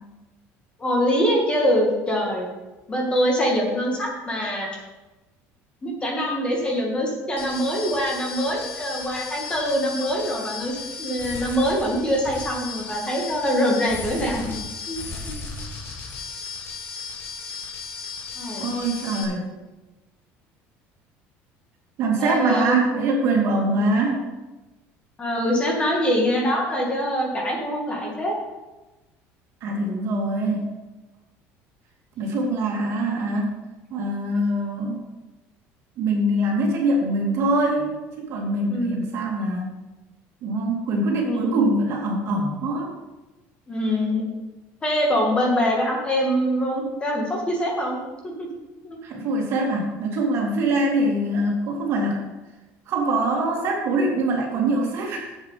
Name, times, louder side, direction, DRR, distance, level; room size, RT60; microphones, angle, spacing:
voice 1, 0.8-2.5 2.9-4.8 5.8-14.5 14.9-15.0 15.3-15.4 18.4-18.7 22.2-22.8 25.2-28.4 38.7-39.0 41.2-41.6 43.7-44.3 44.8-48.0 48.2-48.5 48.8-49.0, equal, 20° left, -1 dB, 2.1 m, -24 dB
sound 1, 7.4-19.2, left 4 dB, 45° left, 2.4 m, -35 dB
voice 2, 18.6-19.5 22.0-24.3 29.6-30.7 32.2-33.5 33.9-35.0 36.0-39.7 40.4-42.9 49.0-52.2 52.9-55.4, right 2 dB, 50° right, 0 dB, 2.4 m, -23 dB
7.5 x 7.4 x 5.8 m, 1.1 s
cardioid pair, 145°, 6 cm